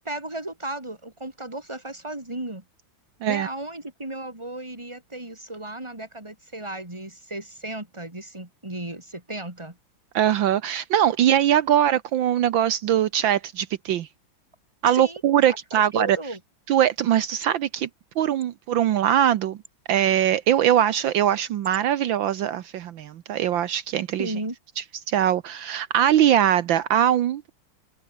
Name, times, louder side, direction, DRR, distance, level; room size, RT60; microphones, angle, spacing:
voice 1, 0.0-2.6 3.3-9.8 14.8-15.2 15.7-16.4 24.2-24.6, right 1 dB, 15° right, 4.0 m, -35 dB
voice 2, 10.1-14.1 14.8-16.2 16.7-17.9 18.2-19.6 19.9-24.3 25.1-27.5, right 10 dB, 75° right, 1.6 m, -21 dB
omnidirectional pair, 2.2 m